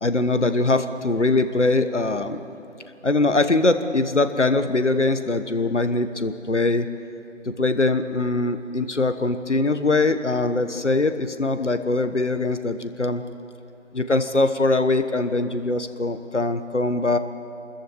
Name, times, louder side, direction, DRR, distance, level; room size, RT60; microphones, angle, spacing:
voice 1, 0.0-2.4 3.0-6.9 7.4-13.2 13.9-17.2, left 2 dB, 60° left, 10 dB, 1.4 m, -22 dB
27.0 x 14.0 x 8.6 m, 2.8 s
figure-of-eight pair, 165°, 39 cm